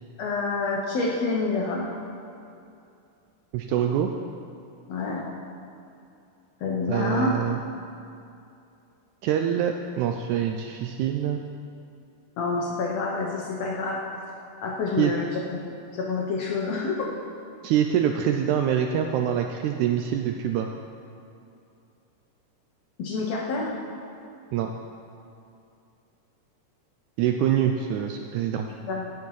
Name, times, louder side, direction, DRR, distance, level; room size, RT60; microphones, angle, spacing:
voice 1, 0.2-1.9 4.9-5.2 6.6-7.3 12.4-14.0 14.6-17.1 23.0-23.7 28.8-29.1, left 3 dB, 70° left, -2 dB, 1.7 m, -28 dB
voice 2, 3.5-4.1 6.9-7.6 9.2-11.4 15.0-15.1 17.6-20.7 24.5-24.7 27.2-28.7, right 9 dB, 80° right, 4 dB, 1.7 m, -25 dB
16.0 x 7.3 x 4.8 m, 2.6 s
omnidirectional pair, 3.8 m